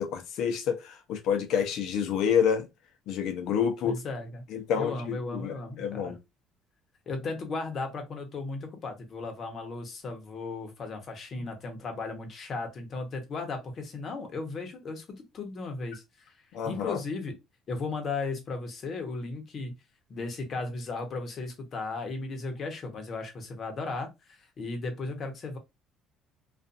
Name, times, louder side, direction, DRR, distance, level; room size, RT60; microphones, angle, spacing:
voice 1, 0.0-2.7 3.1-4.0 4.5-6.2 16.5-17.0, left 7 dB, 70° left, 0.7 m, -28 dB
voice 2, 3.8-4.4 4.7-6.1 7.1-15.0 15.3-16.3 16.6-17.3 17.7-19.7 20.1-25.6, left 3 dB, 50° left, 1.0 m, -36 dB
2.5 x 2.5 x 2.6 m
supercardioid pair, 85°, 0 cm